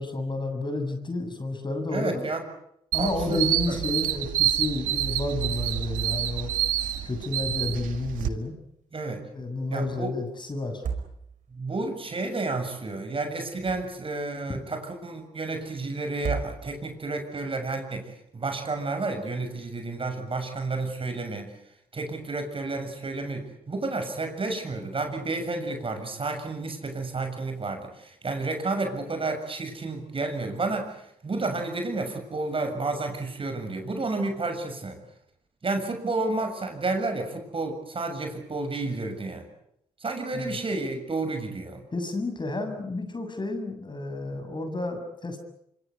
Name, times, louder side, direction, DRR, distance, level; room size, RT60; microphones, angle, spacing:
voice 1, 0.0-2.2 2.9-6.5 7.0-8.6 9.3-10.8 14.5-14.6 40.3-40.6 41.9-45.4, left 2 dB, 35° left, 7 dB, 7.4 m, -31 dB
voice 2, 1.9-2.4 3.0-3.4 3.7-3.8 8.9-9.2 9.7-10.2 11.5-21.5 21.9-35.0 35.6-39.5 40.0-41.8, right 3 dB, 40° right, 6 dB, 7.1 m, -31 dB
sound 1, 2.9-8.3, right 12 dB, 85° right, 1.8 m, -28 dB
sound 2, 7.8-8.4 8.6-8.7 10.6-11.6 13.3-14.2 16.1-17.0, right 6 dB, 65° right, 5.0 m, -35 dB
25.5 x 24.5 x 8.4 m, 0.76 s
supercardioid pair, 50°, 14 cm